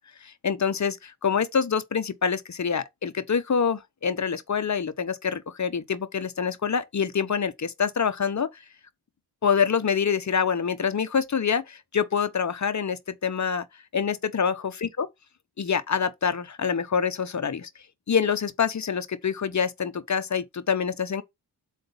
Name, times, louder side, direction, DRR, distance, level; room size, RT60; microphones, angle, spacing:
voice 1, 0.2-8.5 9.4-13.7 13.9-15.1 15.6-17.7 18.1-21.2, left 6 dB, 40° left, 0.9 m, -26 dB
7.8 x 2.6 x 5.5 m
supercardioid pair, 45°, 46 cm